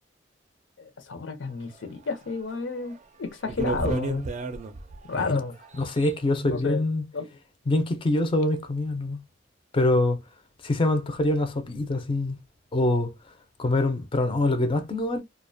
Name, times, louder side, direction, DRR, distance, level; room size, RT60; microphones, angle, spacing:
voice 1, 0.8-4.3 5.0-5.5 6.3-6.8 7.1-7.3, left 4 dB, 80° left, 0.6 m, -31 dB
sound 1, 2.3-2.4 2.9-3.0 3.4-5.1 5.6-6.1, right 3 dB, 40° right, 0.4 m, -31 dB
voice 2, 5.8-7.0 7.7-9.2 9.7-10.2 10.6-12.4 12.7-13.1 13.6-15.2, left 2 dB, 30° left, 0.4 m, -24 dB
2.4 x 2.1 x 2.5 m
head